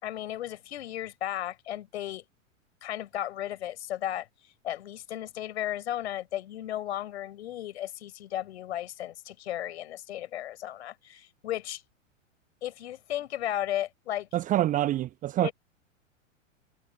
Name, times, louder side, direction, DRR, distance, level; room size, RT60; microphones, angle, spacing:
voice 1, 0.0-2.2 2.8-4.3 4.6-11.8 12.6-14.3 15.4-15.5, left 12 dB, 55° left, 4.1 m, -35 dB
voice 2, 14.3-15.5, right 14 dB, 20° right, 1.0 m, -26 dB
figure-of-eight pair, 100°, 39 cm